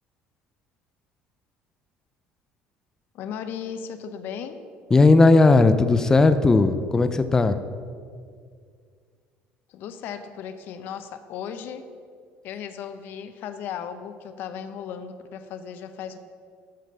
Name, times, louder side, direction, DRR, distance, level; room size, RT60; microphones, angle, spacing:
voice 1, 3.1-4.6 9.7-11.9 12.4-16.2, left 8 dB, 60° left, 9 dB, 0.8 m, -36 dB
voice 2, 4.9-7.6, left 3 dB, 15° left, 11 dB, 0.5 m, -17 dB
13.5 x 5.2 x 6.6 m, 2.1 s
cardioid pair, 140°, 4 cm